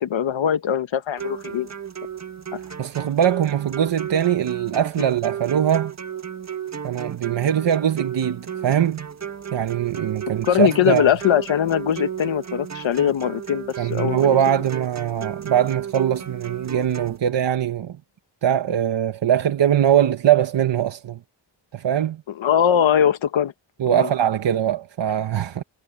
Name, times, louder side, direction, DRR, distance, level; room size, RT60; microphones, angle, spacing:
voice 1, 0.0-1.7 10.5-14.4 22.3-23.5 23.9-24.1, left 9 dB, 90° left, 1.5 m, -21 dB
sound 1, 1.2-17.2, right 8 dB, 35° right, 1.6 m, -34 dB
voice 2, 2.8-5.9 6.8-9.1 9.5-11.1 13.8-18.0 18.4-21.2 21.7-22.2 23.8-25.6, right 10 dB, 70° right, 1.1 m, -21 dB
wide cardioid pair, 105°, 45 cm